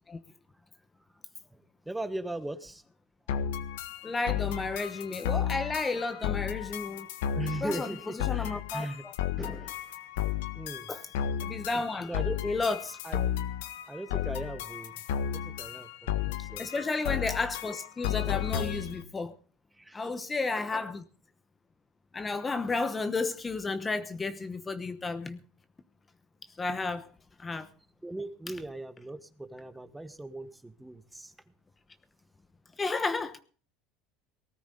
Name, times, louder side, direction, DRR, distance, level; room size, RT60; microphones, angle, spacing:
voice 1, 1.5-2.8 7.4-9.1 9.4-9.8 10.5-10.9 11.7-12.5 13.0-13.2 13.9-14.9 15.3-16.7 18.2-18.4 19.8-20.1 20.5-20.9 28.0-31.3, right 2 dB, 5° right, 12 dB, 1.2 m, -39 dB
sound 1, 3.3-19.0, left 10 dB, 85° left, 1.4 m, -33 dB
voice 2, 4.0-7.1 7.6-9.1 10.9-11.1 11.4-12.1 12.4-13.0 16.4-19.4 19.9-21.0 22.1-25.4 26.5-27.1 27.4-27.7 32.8-33.4, left 3 dB, 20° left, 12 dB, 1.0 m, -32 dB
19.0 x 13.5 x 3.8 m, 0.40 s
supercardioid pair, 125°, 0 cm